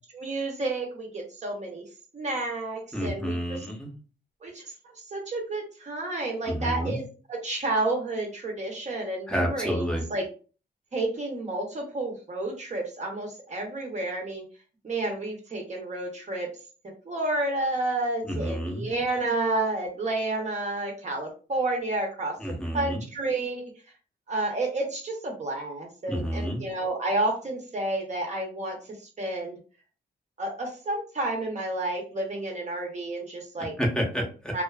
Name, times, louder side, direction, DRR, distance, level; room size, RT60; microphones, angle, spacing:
voice 1, 0.1-1.8 2.1-3.7 4.4-9.8 10.1-10.3 10.9-14.4 14.8-16.5 17.1-22.4 22.7-23.6 24.3-28.8 29.2-29.5 30.4-33.7 34.5-34.6, right 2 dB, 40° right, 0 dB, 0.8 m, -30 dB
voice 2, 2.9-3.9 6.5-7.0 9.3-10.0 18.2-18.9 22.4-23.0 26.1-26.6 33.6-34.5, equal, 5° left, 0 dB, 0.7 m, -29 dB
2.4 x 2.4 x 2.3 m, 0.37 s
cardioid pair, 115°, 18 cm